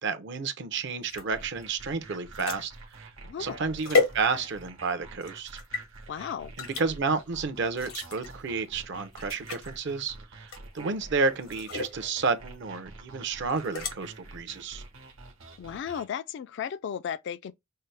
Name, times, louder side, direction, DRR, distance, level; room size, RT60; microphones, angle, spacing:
voice 1, 0.0-2.7 3.0-3.1 3.4-5.6 6.6-14.8, right 4 dB, 60° right, 0.6 m, -31 dB
sound 1, 1.0-4.8 5.2-5.8 6.6-6.9 7.7-8.3 8.8-8.9 9.1-9.7 10.5-10.9 11.4-12.0 13.5-13.9, left 4 dB, 85° left, 1.1 m, -32 dB
sound 2, 1.3-16.1, right 3 dB, 80° right, 1.1 m, -47 dB
voice 2, 3.2-3.6 6.1-6.5 15.6-17.5, left 8 dB, 60° left, 0.3 m, -35 dB
5.5 x 2.0 x 3.2 m
head